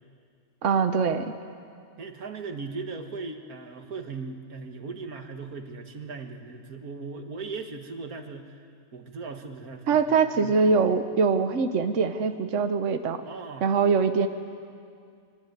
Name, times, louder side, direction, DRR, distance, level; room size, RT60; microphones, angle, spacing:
voice 1, 0.6-1.3 9.9-13.2 13.6-14.3, right 5 dB, 60° right, 8 dB, 1.3 m, -23 dB
voice 2, 2.0-8.6 8.9-10.7 13.2-13.7, right 4 dB, 85° right, 5 dB, 2.1 m, -38 dB
23.5 x 22.5 x 9.3 m, 2.3 s
omnidirectional pair, 1.5 m